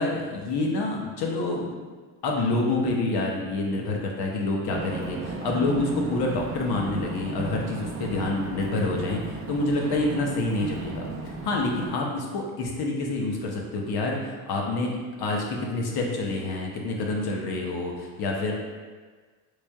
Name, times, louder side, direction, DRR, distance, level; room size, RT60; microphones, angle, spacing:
voice 1, 0.0-1.7 2.2-18.6, left 2 dB, 55° left, 0 dB, 0.9 m, -27 dB
sound 1, 4.7-11.9, right 3 dB, 30° right, 0.5 m, -35 dB
4.0 x 3.2 x 2.3 m, 1.4 s
supercardioid pair, 75°, 45 cm